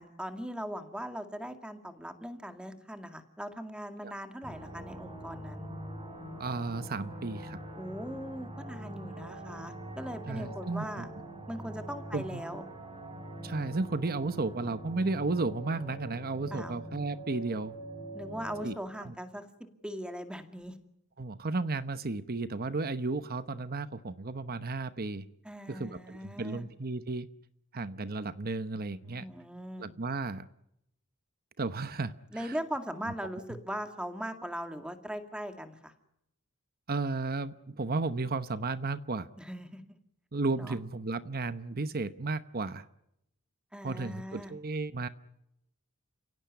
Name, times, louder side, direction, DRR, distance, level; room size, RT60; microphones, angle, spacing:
voice 1, 0.0-5.7 7.8-11.1 11.5-12.6 16.5-16.7 18.1-19.5 19.8-20.8 25.4-26.6 29.0-29.9 32.3-35.9 39.4-40.0 40.6-40.8 43.7-44.5, equal, 5° right, 7 dB, 2.2 m, -40 dB
sound 1, 4.4-18.7, right 1 dB, 25° right, 5.4 m, -43 dB
voice 2, 6.4-7.6 10.3-11.1 12.1-12.4 13.4-17.7 18.6-18.7 19.0-19.1 21.2-25.3 25.7-27.3 27.7-29.3 29.8-30.5 31.6-32.6 33.0-33.1 33.5-33.6 36.9-39.3 40.3-42.9 43.8-45.1, right 3 dB, 45° right, 12 dB, 1.0 m, -33 dB
30.0 x 17.5 x 9.7 m, 0.81 s
head